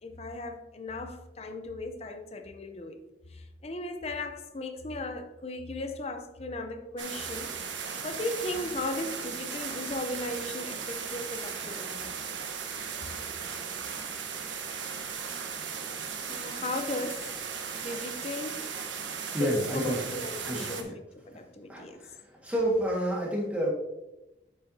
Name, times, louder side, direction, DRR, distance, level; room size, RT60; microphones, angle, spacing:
voice 1, 0.0-3.0 3.3-7.5 8.0-12.2 16.3-17.5 17.7-18.7 19.4-20.9 21.3-22.0, left 2 dB, 35° left, 0.6 m, -37 dB
sound 1, 7.0-20.8, right 6 dB, 90° right, 1.1 m, -37 dB
voice 2, 19.3-20.0 20.4-20.9 21.7-22.2 22.4-23.7, right 1 dB, 10° right, 1.7 m, -29 dB
7.9 x 6.8 x 2.8 m
head